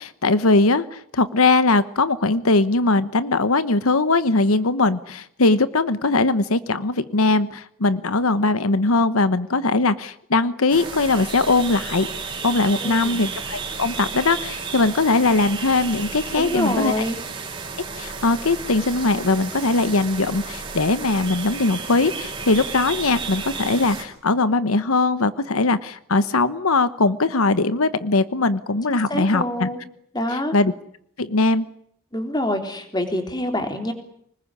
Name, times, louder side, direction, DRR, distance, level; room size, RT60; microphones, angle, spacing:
voice 1, 0.0-12.1 12.4-16.9 18.0-29.7 30.3-30.7 31.2-31.7, left 3 dB, 85° left, 14 dB, 1.1 m, -20 dB
sound 1, 10.7-24.0, right 5 dB, 25° right, 4.9 m, -33 dB
voice 2, 12.8-13.3 16.4-17.2 28.9-29.8 30.1-30.5 32.1-33.9, left 1 dB, 20° left, 5 dB, 3.5 m, -26 dB
25.5 x 21.0 x 9.8 m, 0.70 s
head